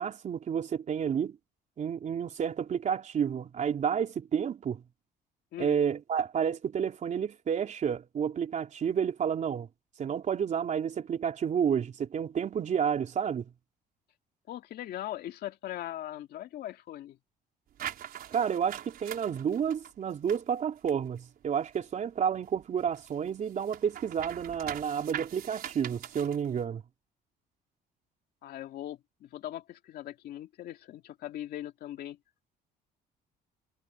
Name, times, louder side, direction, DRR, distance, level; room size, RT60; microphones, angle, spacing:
voice 1, 0.0-1.4 1.8-4.8 5.6-9.7 10.0-13.5 18.3-26.8, right 7 dB, 45° right, 3.9 m, -30 dB
voice 2, 14.5-17.2 28.4-32.2, left 13 dB, 70° left, 2.3 m, -40 dB
sound 1, 17.8-22.0 22.3-26.6, right 11 dB, 60° right, 4.8 m, -43 dB
cardioid pair, 110°, 17 cm